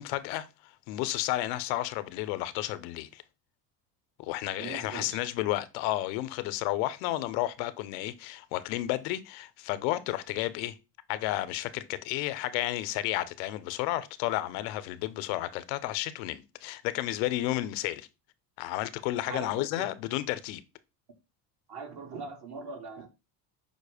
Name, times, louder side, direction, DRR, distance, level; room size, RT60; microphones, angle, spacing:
voice 1, 0.0-3.2 4.2-10.8 11.1-18.1 18.6-20.6, left 15 dB, 85° left, 0.6 m, -32 dB
voice 2, 4.6-5.2 19.3-19.9 21.7-23.1, right 4 dB, 50° right, 1.6 m, -41 dB
5.3 x 2.1 x 4.8 m
supercardioid pair, 85°, 50 cm